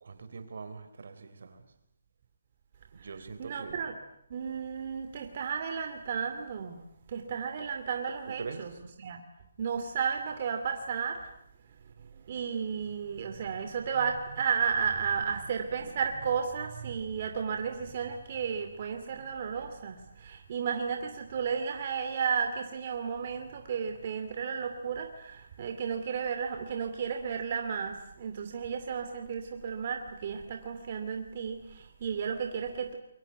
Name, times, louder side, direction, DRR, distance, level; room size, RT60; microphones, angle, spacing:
voice 1, 0.0-1.7 2.9-3.8 8.4-8.6, right 4 dB, 65° right, 11 dB, 3.8 m, -42 dB
voice 2, 3.4-3.9 4.3-6.8 7.1-8.7 9.0-9.2 9.6-11.3 12.1-33.0, right 6 dB, 40° right, 5 dB, 2.5 m, -33 dB
28.0 x 23.0 x 8.3 m, 0.75 s
hypercardioid pair, 165°, 0 cm